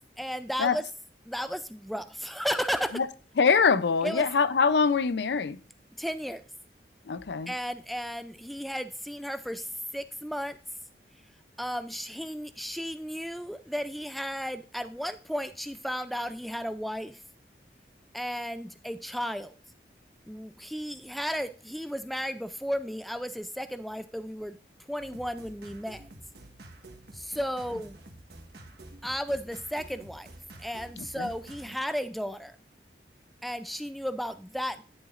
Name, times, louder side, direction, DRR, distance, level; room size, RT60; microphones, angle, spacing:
voice 1, 0.2-0.8 1.3-3.0 4.0-4.3 6.0-6.4 7.5-9.7 9.9-10.6 11.6-17.2 18.1-19.5 20.3-24.6 24.9-26.1 27.1-28.0 29.0-30.3 30.6-32.6 33.4-34.8, equal, ahead, 0.3 m, -34 dB
voice 2, 3.4-5.6 7.1-7.5 31.0-31.3, left 5 dB, 80° left, 0.5 m, -24 dB
sound 1, 25.0-31.8, right 1 dB, 70° right, 1.3 m, -49 dB
10.5 x 7.0 x 2.4 m
head